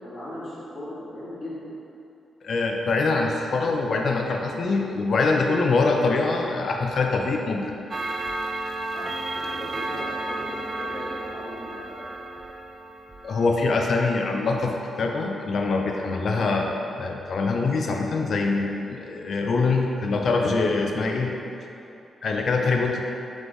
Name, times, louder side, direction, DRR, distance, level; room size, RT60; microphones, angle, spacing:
voice 1, 0.0-1.7 8.9-12.2 13.5-13.7 14.2-14.4 16.7-16.9 20.7-20.8, left 1 dB, 35° left, -11 dB, 1.4 m, -38 dB
voice 2, 2.4-7.7 13.2-14.7 15.0-21.3 22.2-23.0, left 3 dB, 55° left, 2 dB, 0.4 m, -24 dB
Clock, 7.9-13.9, right 2 dB, 35° right, 0.3 m, -32 dB
3.6 x 3.1 x 3.8 m, 2.7 s
cardioid pair, 120°, 0 cm